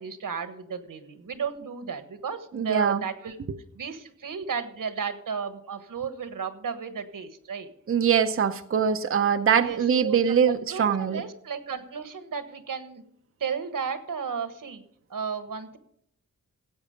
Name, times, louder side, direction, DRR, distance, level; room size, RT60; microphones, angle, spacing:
voice 1, 0.0-3.4 3.7-7.7 9.5-13.0 13.4-14.8 15.1-15.8, right 6 dB, 90° right, 10 dB, 1.3 m, -34 dB
voice 2, 2.5-3.0 7.9-11.2, right 7 dB, 45° right, 9 dB, 0.6 m, -23 dB
16.0 x 8.6 x 5.1 m, 0.71 s
wide cardioid pair, 140°, 32 cm